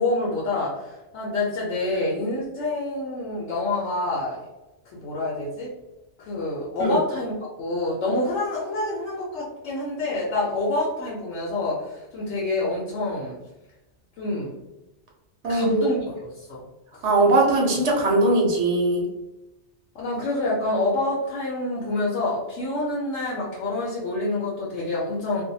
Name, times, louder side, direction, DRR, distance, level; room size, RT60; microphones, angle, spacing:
voice 1, 0.0-4.4 4.9-5.7 6.2-13.4 14.2-14.5 15.5-16.0 16.3-16.6 19.9-25.4, left 2 dB, 90° left, -5 dB, 1.0 m, -27 dB
voice 2, 15.4-15.8 17.0-19.0, right 2 dB, 80° right, -1 dB, 1.0 m, -20 dB
2.6 x 2.1 x 2.6 m, 0.99 s
omnidirectional pair, 1.2 m